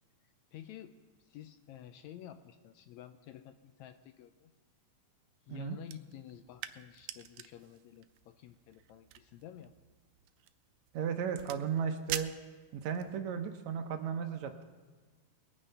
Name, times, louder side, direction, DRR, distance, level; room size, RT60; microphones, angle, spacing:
voice 1, 0.5-4.5 5.5-9.7, left 11 dB, 80° left, 10 dB, 1.7 m, -51 dB
sound 1, 5.8-13.2, right 13 dB, 90° right, 2.2 m, -46 dB
voice 2, 10.9-12.3 12.7-14.7, right 7 dB, 70° right, 6 dB, 2.0 m, -35 dB
21.5 x 9.2 x 5.5 m, 1.4 s
omnidirectional pair, 3.6 m